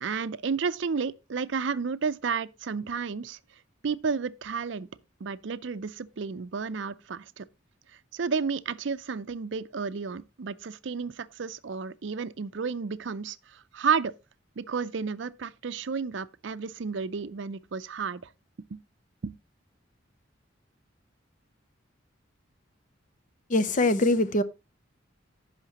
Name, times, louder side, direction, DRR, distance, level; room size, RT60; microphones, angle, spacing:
voice 1, 0.0-3.4 3.8-4.9 5.2-7.5 8.1-14.1 14.6-18.3 18.7-18.8 19.2-19.3, right 5 dB, 65° right, 0.5 m, -32 dB
voice 2, 23.5-24.4, left 2 dB, 40° left, 0.7 m, -23 dB
15.5 x 5.8 x 2.9 m
head